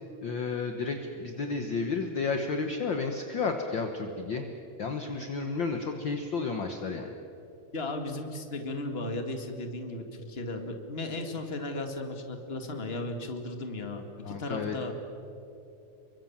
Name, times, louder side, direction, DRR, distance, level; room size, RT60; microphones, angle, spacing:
voice 1, 0.2-4.4 4.8-7.1 14.2-14.8, left 4 dB, 55° left, 5 dB, 1.3 m, -32 dB
voice 2, 7.7-15.0, left 2 dB, 20° left, 5 dB, 1.8 m, -35 dB
29.0 x 24.0 x 7.4 m, 2.9 s
omnidirectional pair, 3.9 m